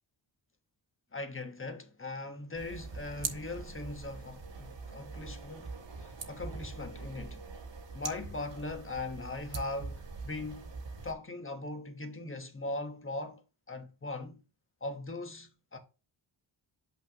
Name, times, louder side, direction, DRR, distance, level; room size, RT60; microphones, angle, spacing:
voice 1, 1.1-7.4 7.9-10.7 11.0-13.4 13.7-14.4 14.8-15.8, left 2 dB, 25° left, 1.2 m, -40 dB
sound 1, 2.5-11.1, right 4 dB, 60° right, 1.3 m, -43 dB
7.5 x 5.8 x 2.9 m
wide cardioid pair, 85°, 49 cm